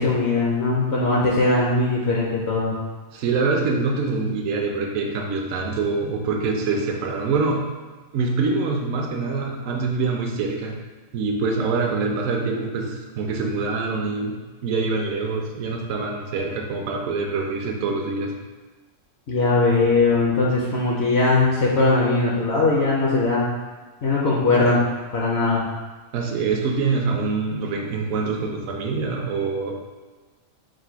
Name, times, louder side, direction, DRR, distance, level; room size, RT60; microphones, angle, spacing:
voice 1, 0.0-2.8 19.3-23.5 24.0-24.8 25.1-25.6, left 3 dB, 60° left, -4 dB, 0.8 m, -20 dB
voice 2, 3.1-7.7 8.1-10.8 11.1-18.3 26.1-29.7, right 4 dB, 75° right, 1 dB, 1.0 m, -25 dB
4.9 x 2.2 x 4.5 m, 1.3 s
omnidirectional pair, 1.4 m